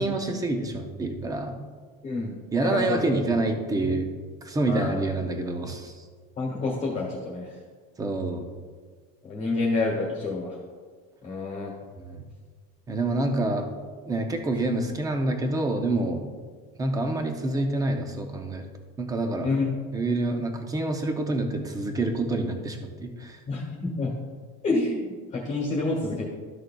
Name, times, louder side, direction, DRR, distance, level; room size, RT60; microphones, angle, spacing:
voice 1, 0.0-1.6 2.5-4.1 4.4-6.0 8.0-8.5 12.0-12.2 12.9-13.7 14.0-16.2 16.8-18.6 19.0-19.5 19.9-23.4, right 2 dB, 10° right, 5 dB, 0.5 m, -27 dB
voice 2, 2.6-3.0 4.7-5.0 6.4-7.5 9.2-10.6 11.2-11.7 19.4-19.7 23.5-24.1 24.6-26.2, left 3 dB, 25° left, -3 dB, 1.4 m, -28 dB
12.5 x 6.5 x 2.2 m, 1.5 s
cardioid pair, 175°, 31 cm